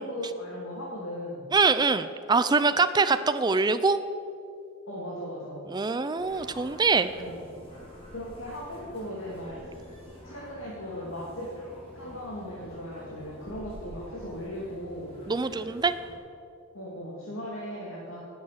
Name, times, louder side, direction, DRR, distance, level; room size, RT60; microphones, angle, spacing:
voice 1, 0.0-1.4 4.9-5.6 7.2-7.4 8.1-9.6 10.2-11.5 11.9-15.2 16.7-18.2, equal, 70° left, -4 dB, 2.5 m, -37 dB
voice 2, 1.5-4.0 5.7-7.1 15.3-15.9, right 4 dB, 20° right, 11 dB, 0.4 m, -24 dB
sound 1, 6.2-16.1, left 1 dB, 30° left, 3.9 m, -48 dB
18.5 x 8.0 x 6.6 m, 2.6 s
head